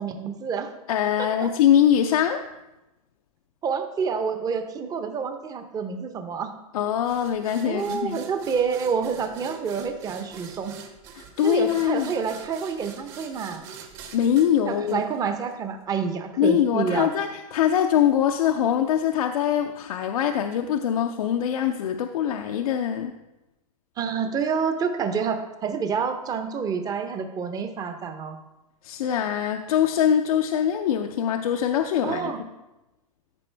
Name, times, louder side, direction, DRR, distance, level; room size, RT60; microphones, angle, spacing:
voice 1, 0.0-0.7 1.2-1.5 3.6-6.5 7.6-10.8 11.4-13.6 14.6-17.1 24.0-28.4 32.0-32.4, right 6 dB, 20° right, 7 dB, 0.8 m, -28 dB
voice 2, 0.9-2.4 6.7-8.2 11.2-12.1 14.1-15.0 16.4-23.1 28.8-32.3, left 9 dB, 75° left, 5 dB, 0.6 m, -23 dB
sound 1, 7.1-15.6, right 6 dB, 50° right, 1.6 m, -44 dB
13.5 x 5.2 x 3.4 m, 0.99 s
hypercardioid pair, 130°, 19 cm